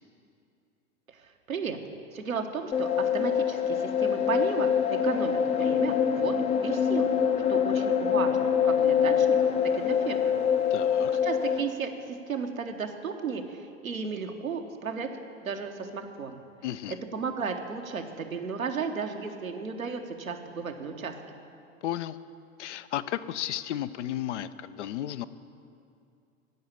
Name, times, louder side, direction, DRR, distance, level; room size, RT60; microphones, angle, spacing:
voice 1, 1.1-1.8 2.1-7.1 7.5-9.5 9.7-10.3 11.2-15.1 15.4-16.4 16.9-21.1, right 5 dB, 80° right, 4 dB, 1.1 m, -34 dB
sound 1, 2.7-11.6, left 7 dB, 15° left, 0.5 m, -25 dB
voice 2, 10.7-11.2 16.6-17.0 21.8-22.2 22.6-25.3, left 12 dB, 60° left, 13 dB, 0.6 m, -33 dB
16.0 x 5.7 x 8.6 m, 2.5 s
figure-of-eight pair, 85°, 41 cm